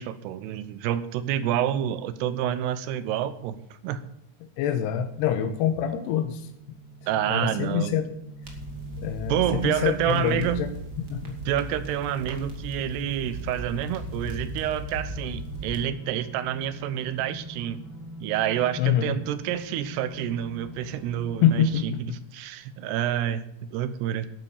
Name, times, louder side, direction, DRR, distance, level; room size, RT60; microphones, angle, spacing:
voice 1, 0.0-3.6 3.8-4.0 7.1-7.9 9.3-10.7 11.5-17.8 18.2-21.6 22.0-24.3, right 10 dB, 80° right, 13 dB, 3.0 m, -28 dB
voice 2, 4.4-6.5 7.3-8.1 9.0-10.7 11.1-11.4 18.8-19.1 21.4-22.2, left 9 dB, 85° left, 8 dB, 3.0 m, -25 dB
sound 1, 4.9-21.7, right 3 dB, 35° left, 2.3 m, -43 dB
sound 2, 8.4-15.8, equal, 30° right, 2.0 m, -38 dB
11.5 x 8.7 x 7.2 m, 0.79 s
omnidirectional pair, 4.8 m